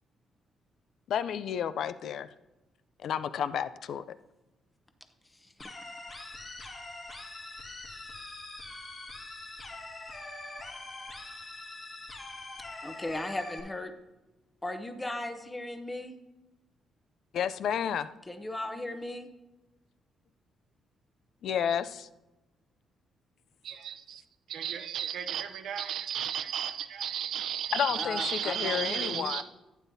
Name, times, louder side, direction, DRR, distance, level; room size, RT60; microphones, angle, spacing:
voice 1, 1.1-2.3 3.0-4.0 17.3-18.1 21.4-22.1 27.7-29.4, left 8 dB, 70° left, 14 dB, 0.4 m, -31 dB
sound 1, 5.6-13.6, left 2 dB, 40° left, 2.5 m, -43 dB
voice 2, 12.8-13.9 14.6-16.2 18.3-19.3 28.0-29.4, left 1 dB, 15° left, 7 dB, 0.8 m, -37 dB
voice 3, 23.6-24.2 24.5-29.4, right 9 dB, 75° right, 8 dB, 0.7 m, -34 dB
11.5 x 9.1 x 2.7 m, 1.0 s
cardioid pair, 90°, 0 cm